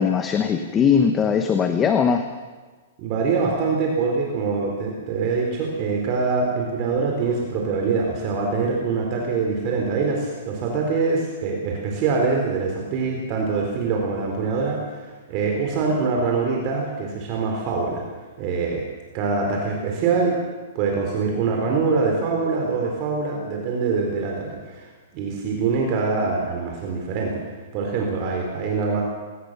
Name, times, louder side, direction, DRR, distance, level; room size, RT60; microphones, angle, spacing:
voice 1, 0.0-2.3, left 7 dB, 20° left, 7 dB, 1.2 m, -20 dB
voice 2, 3.0-18.0 18.4-18.9 19.1-20.4 20.7-24.9 25.1-27.4 27.7-29.0, right 4 dB, 35° right, 0 dB, 4.2 m, -24 dB
21.5 x 19.0 x 6.8 m, 1.4 s
hypercardioid pair, 150°, 0 cm